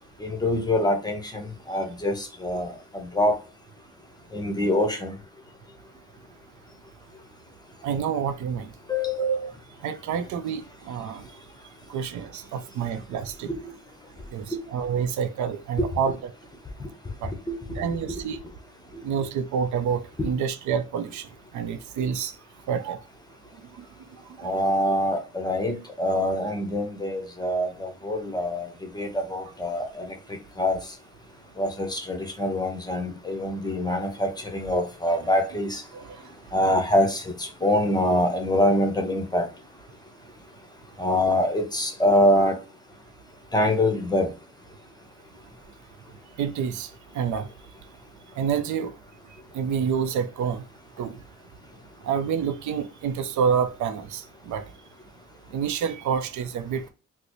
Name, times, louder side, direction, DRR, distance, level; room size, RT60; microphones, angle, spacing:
voice 1, 0.2-3.3 4.3-5.1 8.9-9.2 15.8-15.9 16.8-16.9 17.5-18.0 24.4-30.1 30.6-30.8 31.6-35.8 36.5-39.5 41.0-42.6 43.5-44.3, left 1 dB, 15° left, 0.8 m, -25 dB
voice 2, 7.8-8.7 9.2-9.5 9.8-11.2 11.9-13.5 14.3-16.3 17.2-17.3 17.8-18.4 19.0-21.3 21.5-22.3 22.7-23.0 24.4-24.7 35.9-36.2 46.4-46.9 47.1-47.5 48.4-48.9 49.5-50.6 51.0-51.2 52.0-54.6 55.5-56.8, right 7 dB, 70° right, 0.5 m, -28 dB
3.9 x 2.0 x 3.0 m
cardioid pair, 90°, 30 cm